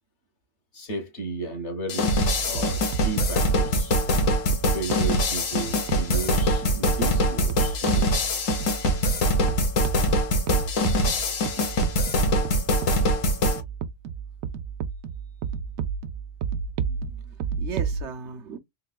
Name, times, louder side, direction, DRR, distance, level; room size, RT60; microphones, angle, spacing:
voice 1, 0.7-4.0 4.7-8.1, right 3 dB, 60° left, 1.7 m, -34 dB
sound 1, 1.9-13.6, equal, 75° left, 1.4 m, -23 dB
sound 2, 2.2-18.0, right 6 dB, 90° right, 1.0 m, -33 dB
voice 2, 16.9-18.6, right 6 dB, 60° right, 1.1 m, -38 dB
3.9 x 3.2 x 2.2 m
omnidirectional pair, 1.4 m